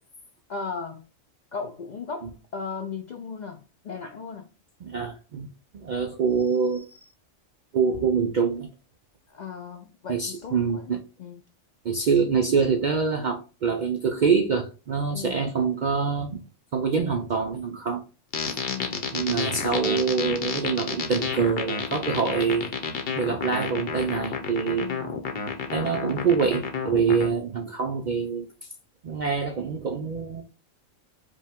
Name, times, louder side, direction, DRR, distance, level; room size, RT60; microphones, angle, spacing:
voice 1, 0.5-1.0 1.5-4.5 9.3-10.9 11.2-11.4 15.1-15.5 18.7-19.1 24.8-25.2, left 5 dB, 75° left, 0.4 m, -37 dB
voice 2, 4.8-5.5 5.7-7.1 7.7-8.7 10.1-11.0 11.8-16.4 16.7-18.0 19.1-22.7 23.1-24.9 25.7-28.5 29.0-30.4, right 5 dB, 70° right, 0.4 m, -25 dB
sound 1, 18.3-27.3, left 5 dB, 55° left, 0.9 m, -30 dB
5.1 x 2.2 x 3.5 m
omnidirectional pair, 1.3 m